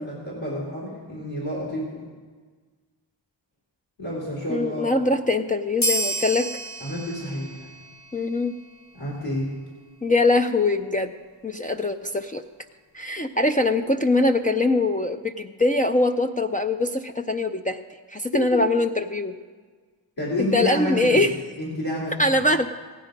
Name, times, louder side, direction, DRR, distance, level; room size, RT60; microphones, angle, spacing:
voice 1, 0.0-2.0 4.0-5.2 6.8-7.7 8.9-9.5 18.5-18.6 20.2-21.3 21.6-22.2, left 1 dB, 70° left, -6 dB, 3.9 m, -29 dB
voice 2, 4.5-6.5 8.1-8.6 10.0-11.1 11.4-12.4 12.9-17.8 18.1-19.3 20.4-21.3 22.2-22.7, left 2 dB, 20° left, 6 dB, 0.4 m, -22 dB
sound 1, 5.8-8.8, right 1 dB, 40° left, 1.3 m, -30 dB
16.0 x 10.0 x 5.2 m, 1.5 s
wide cardioid pair, 75°, 47 cm